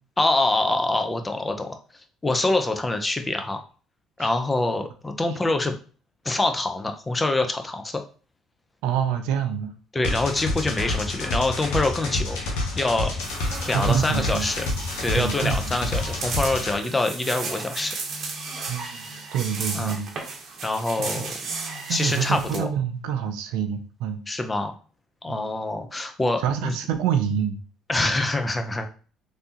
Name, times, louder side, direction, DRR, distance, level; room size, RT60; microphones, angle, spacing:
voice 1, 0.2-1.8 2.2-3.6 4.2-5.7 6.2-8.0 9.9-12.4 12.8-13.1 13.7-14.6 15.0-17.9 19.7-19.9 20.6-21.3 21.9-22.7 24.3-24.7 25.2-26.8 27.9-28.9, left 2 dB, 20° left, 6 dB, 0.6 m, -25 dB
voice 2, 8.8-9.7 10.7-10.8 13.7-14.5 15.2-16.0 16.7-16.9 18.7-20.1 21.0-21.3 21.9-24.2 25.3-25.5 26.4-27.6, right 8 dB, 80° right, 7 dB, 0.4 m, -27 dB
sound 1, 10.0-16.7, left 2 dB, 80° left, 0.9 m, -28 dB
sound 2, 13.2-22.6, right 4 dB, 50° right, 0.8 m, -35 dB
3.3 x 2.7 x 2.8 m, 0.38 s
supercardioid pair, 70°, 0 cm